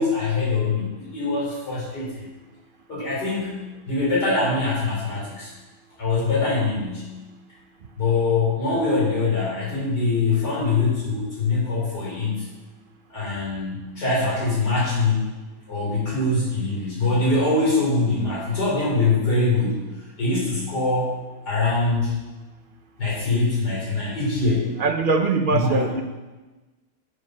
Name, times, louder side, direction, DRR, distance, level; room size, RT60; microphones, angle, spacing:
voice 1, 0.0-2.2 2.9-5.5 6.0-7.1 8.0-12.4 13.1-15.3 15.7-19.8 20.2-21.2 21.5-22.2 23.0-24.7 25.5-25.8, left 3 dB, 80° left, -7 dB, 4.7 m, -23 dB
voice 2, 24.8-26.0, right 4 dB, 50° right, 5 dB, 0.6 m, -22 dB
9.7 x 7.3 x 6.5 m, 1.2 s
omnidirectional pair, 1.8 m